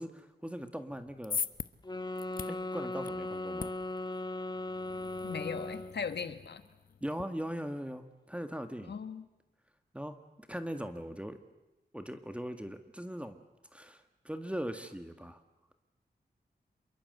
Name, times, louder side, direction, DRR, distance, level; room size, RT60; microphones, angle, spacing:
voice 1, 0.0-1.4 2.5-3.7 7.0-8.9 9.9-11.4 11.9-13.4 13.7-15.4, equal, 5° right, 8 dB, 1.8 m, -40 dB
sound 1, 0.9-7.2, left 5 dB, 55° left, 0.9 m, -43 dB
sound 2, 1.8-6.1, left 2 dB, 25° left, 1.7 m, -38 dB
voice 2, 5.2-6.6 8.9-9.3, left 6 dB, 80° left, 10 dB, 1.5 m, -38 dB
27.5 x 23.0 x 8.0 m, 1.0 s
wide cardioid pair, 80°, 17 cm